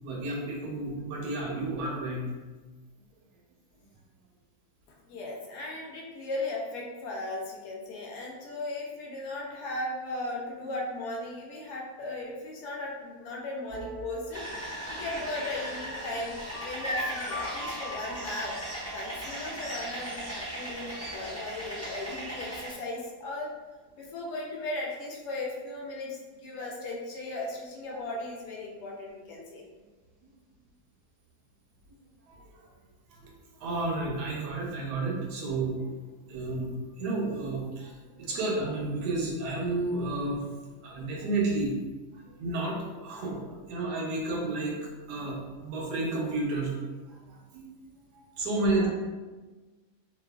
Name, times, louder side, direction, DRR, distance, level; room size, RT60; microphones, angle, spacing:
voice 1, 0.0-2.3 27.9-28.0 32.3-32.7 33.1-33.3 33.6-36.0 36.3-40.4 40.8-41.7 42.4-43.4 43.7-44.7 45.1-46.7 47.1-47.6 48.1-48.9, right 2 dB, 80° right, -1 dB, 1.2 m, -31 dB
voice 2, 5.1-16.3 16.6-18.5 18.9-23.5 24.0-29.7 48.8-48.9, left 2 dB, 75° left, -2 dB, 1.1 m, -37 dB
sound 1, 13.7-21.3, left 1 dB, 5° left, 1.0 m, -45 dB
sound 2, 14.3-22.7, right 1 dB, 20° right, 0.4 m, -37 dB
2.8 x 2.3 x 2.2 m, 1.3 s
omnidirectional pair, 1.8 m